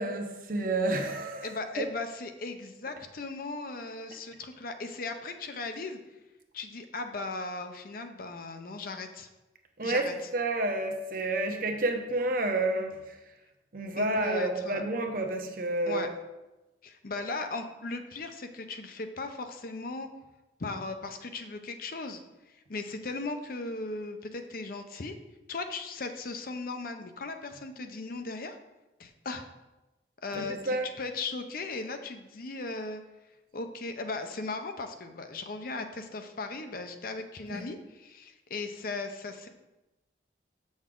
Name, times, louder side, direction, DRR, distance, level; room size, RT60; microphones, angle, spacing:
voice 1, 0.0-1.9 9.8-13.2 13.7-16.1 30.3-30.9 37.5-37.6, right 2 dB, 50° right, 4 dB, 0.9 m, -30 dB
voice 2, 1.4-6.0 6.5-9.3 9.8-10.1 14.0-14.8 15.9-16.1 16.8-20.1 20.6-22.2 22.5-25.2 25.5-28.6 29.0-29.5 30.2-33.0 33.5-39.5, left 3 dB, 50° left, 7 dB, 0.6 m, -37 dB
7.0 x 6.4 x 3.7 m, 1.0 s
head